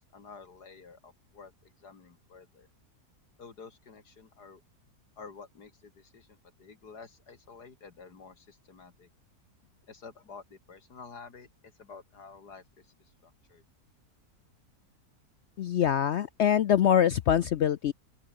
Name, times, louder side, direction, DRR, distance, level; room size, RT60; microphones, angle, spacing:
voice 1, 0.0-2.7 3.4-4.6 5.2-6.3 6.6-9.1 9.9-13.6, left 5 dB, 85° left, 3.0 m, -50 dB
voice 2, 15.6-17.9, left 9 dB, 65° left, 0.7 m, -24 dB
open air
omnidirectional pair, 1.7 m